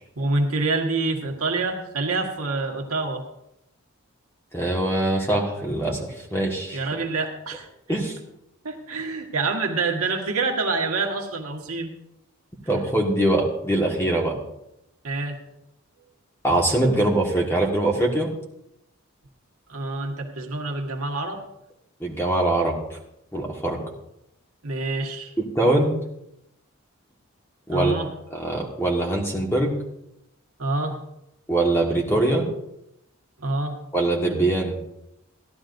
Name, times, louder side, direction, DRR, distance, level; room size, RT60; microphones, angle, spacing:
voice 1, 0.2-3.2 6.7-8.0 8.6-11.9 15.0-15.4 19.7-21.4 24.6-25.3 27.7-28.1 30.6-31.0 33.4-33.7, right 3 dB, 85° right, 2 dB, 1.5 m, -27 dB
voice 2, 4.5-6.0 6.3-6.8 7.9-8.2 12.7-14.3 16.4-18.3 22.0-22.7 23.3-23.8 25.4-25.9 27.7-27.9 28.3-29.7 31.5-32.5 33.9-34.8, right 1 dB, 10° left, -1 dB, 1.6 m, -22 dB
16.0 x 11.5 x 2.6 m, 0.83 s
head